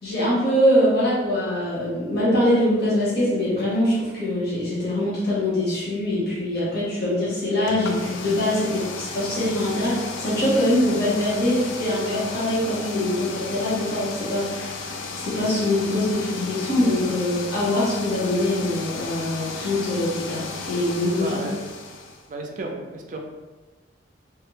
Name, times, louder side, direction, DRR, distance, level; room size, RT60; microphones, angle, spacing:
voice 1, 0.0-14.9 15.2-21.4, left 1 dB, 55° left, -9 dB, 1.2 m, -23 dB
sound 1, 7.6-22.3, left 4 dB, 80° left, 0.4 m, -34 dB
voice 2, 21.2-21.6 22.3-23.2, right 2 dB, 45° right, 2 dB, 0.4 m, -32 dB
3.3 x 2.1 x 3.2 m, 1.3 s
head